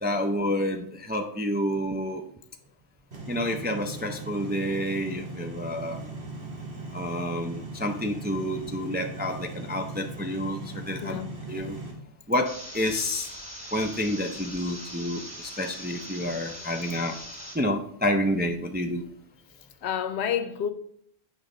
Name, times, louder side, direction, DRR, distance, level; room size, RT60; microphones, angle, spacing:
voice 1, 0.0-2.2 3.3-6.0 6.9-10.6 10.9-11.2 11.5-11.8 12.3-13.3 13.7-17.2 17.5-19.0, left 1 dB, 15° right, 0.3 m, -29 dB
sound 1, 3.1-11.9, right 2 dB, 75° right, 2.1 m, -39 dB
voice 2, 11.0-11.4 19.8-20.7, left 8 dB, 80° left, 0.9 m, -29 dB
sound 2, 12.5-17.5, equal, 10° left, 1.9 m, -41 dB
8.2 x 5.3 x 3.8 m
omnidirectional pair, 1.1 m